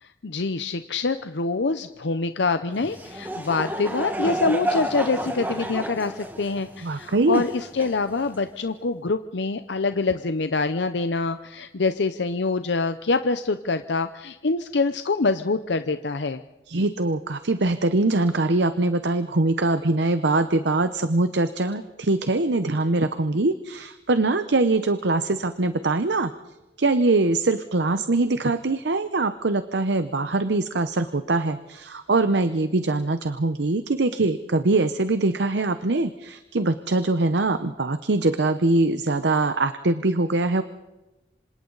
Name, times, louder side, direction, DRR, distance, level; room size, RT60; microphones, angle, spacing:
voice 1, 0.0-16.4, left 3 dB, 80° left, 10 dB, 0.7 m, -25 dB
Laughter / Crowd, 2.7-8.5, right 1 dB, 10° right, 1.6 m, -31 dB
voice 2, 6.8-7.4 16.7-26.3 26.8-40.6, right 2 dB, 80° right, 11 dB, 0.8 m, -23 dB
27.0 x 26.5 x 4.0 m, 1.1 s
head